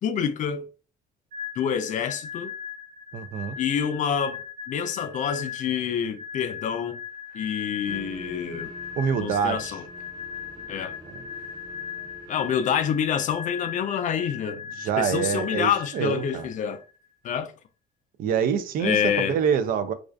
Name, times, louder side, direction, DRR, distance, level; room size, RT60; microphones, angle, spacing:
voice 1, 0.0-0.7 1.6-2.5 3.6-4.4 4.7-7.0 7.3-8.7 9.2-9.8 10.7-10.9 12.3-14.7 15.0-16.8 17.2-17.5 18.8-19.4, left 8 dB, 50° left, 0.4 m, -27 dB
sound 1, 1.3-16.9, left 7 dB, 75° right, 1.3 m, -38 dB
voice 2, 3.1-3.6 9.0-9.8 11.1-11.2 14.8-16.5 18.2-19.9, right 7 dB, 60° right, 0.4 m, -26 dB
sound 2, 7.9-13.2, right 1 dB, 25° right, 0.9 m, -46 dB
2.4 x 2.4 x 2.2 m
cardioid pair, 110°, 17 cm